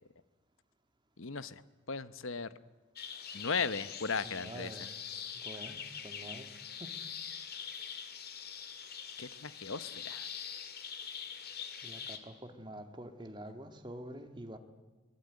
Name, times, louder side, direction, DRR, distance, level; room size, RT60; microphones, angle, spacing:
voice 1, 1.2-1.6 1.9-2.5 3.3-4.7 9.2-10.3, left 5 dB, 60° left, 15 dB, 1.0 m, -36 dB
sound 1, 3.0-12.2, left 7 dB, 45° left, 2.2 m, -44 dB
voice 2, 4.2-4.9 5.3-6.5 6.7-6.9 11.8-14.6, right 1 dB, 20° right, 7 dB, 1.8 m, -47 dB
25.0 x 20.0 x 9.6 m, 1.3 s
head